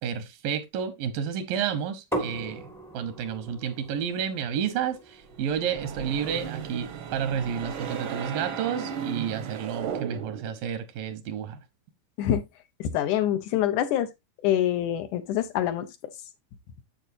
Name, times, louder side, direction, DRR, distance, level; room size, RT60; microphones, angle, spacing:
voice 1, 0.0-2.6 2.9-11.6, right 8 dB, 85° right, 2.8 m, -30 dB
sound 1, 2.1-7.8, right 1 dB, ahead, 0.6 m, -39 dB
sound 2, 5.3-10.6, right 7 dB, 70° right, 1.2 m, -36 dB
voice 2, 12.8-14.1 14.4-15.9, left 11 dB, 75° left, 2.2 m, -25 dB
8.9 x 7.6 x 2.7 m
omnidirectional pair, 3.9 m